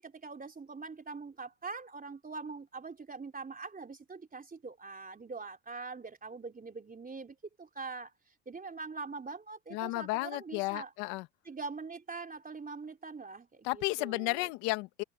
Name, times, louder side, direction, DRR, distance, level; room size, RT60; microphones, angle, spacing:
voice 1, 0.0-8.1 8.4-10.9 11.4-14.5, right 4 dB, 20° right, 3.4 m, -43 dB
voice 2, 9.7-11.3 13.6-15.0, left 23 dB, 85° left, 1.3 m, -33 dB
supercardioid pair, 90°, 38 cm